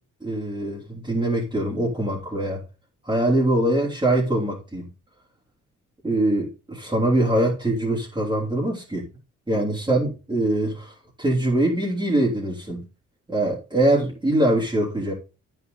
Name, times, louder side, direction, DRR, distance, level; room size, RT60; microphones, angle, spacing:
voice 1, 0.2-2.6 3.0-4.9 6.0-9.1 9.5-12.8 13.3-15.1, right 1 dB, 15° right, -5 dB, 3.4 m, -23 dB
9.2 x 7.0 x 3.9 m, 0.32 s
cardioid pair, 90°, 30 cm